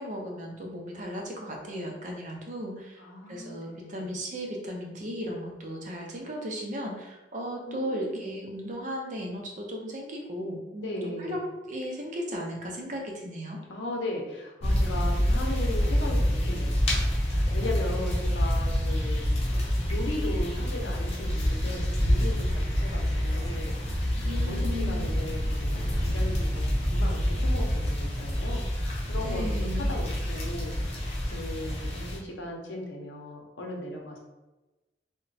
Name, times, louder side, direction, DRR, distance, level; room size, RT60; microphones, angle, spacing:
voice 1, 0.0-3.0 3.3-11.4 11.7-13.6 24.2-25.1 29.2-29.9, equal, 45° right, 0 dB, 0.5 m, -36 dB
voice 2, 3.0-4.1 7.7-8.3 10.8-11.4 13.7-34.2, left 1 dB, 80° left, 0 dB, 0.6 m, -37 dB
sound 1, 14.6-32.2, equal, 35° left, 0.6 m, -27 dB
2.9 x 2.1 x 2.6 m, 1.1 s
head